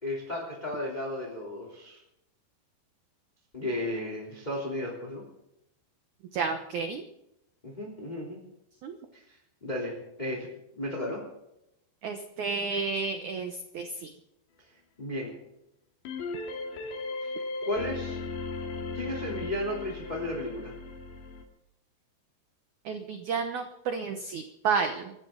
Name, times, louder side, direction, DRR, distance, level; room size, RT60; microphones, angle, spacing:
voice 1, 0.0-2.0 3.5-5.2 7.6-8.4 9.1-10.5 10.7-11.2 15.0-15.3 17.2-17.3 17.6-18.2 18.9-20.7, left 1 dB, 10° left, -1 dB, 2.7 m, -34 dB
voice 2, 6.3-7.1 8.8-9.0 12.0-14.1 22.9-25.1, right 5 dB, 75° right, 6 dB, 1.7 m, -31 dB
sound 1, 16.1-21.5, left 3 dB, 80° left, 4.1 m, -36 dB
25.5 x 13.5 x 3.9 m, 0.84 s
omnidirectional pair, 5.0 m